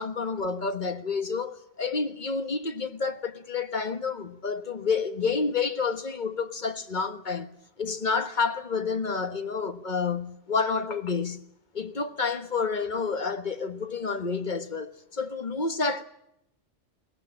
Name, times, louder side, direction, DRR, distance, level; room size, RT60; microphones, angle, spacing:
voice 1, 0.0-7.5 7.8-11.4 11.7-16.0, left 4 dB, 40° left, 1.5 m, -29 dB
22.5 x 20.0 x 8.7 m
omnidirectional pair, 1.2 m